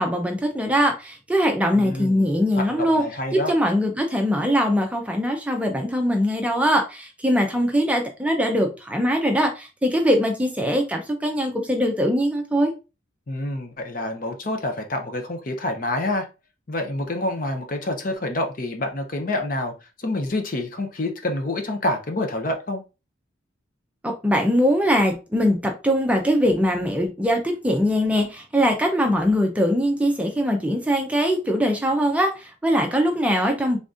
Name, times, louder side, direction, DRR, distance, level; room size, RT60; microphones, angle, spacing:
voice 1, 0.0-3.0 3.3-12.7 24.0-33.8, equal, 5° right, 0.5 m, -22 dB
voice 2, 1.7-3.5 13.3-16.3 16.7-22.8, left 1 dB, 45° left, 0.6 m, -27 dB
3.9 x 3.5 x 2.5 m
head